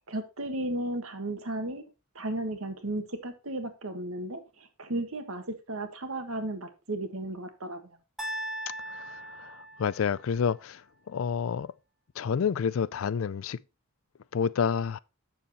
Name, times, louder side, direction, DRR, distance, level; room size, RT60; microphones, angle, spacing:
voice 1, 0.1-1.8 2.1-7.8, right 1 dB, 75° right, 1.5 m, -34 dB
sound 1, 8.2-10.3, right 1 dB, ahead, 1.3 m, -38 dB
voice 2, 8.9-10.8 11.1-11.7 12.2-13.6 14.3-15.0, left 6 dB, 65° left, 0.4 m, -29 dB
7.5 x 6.8 x 4.1 m
head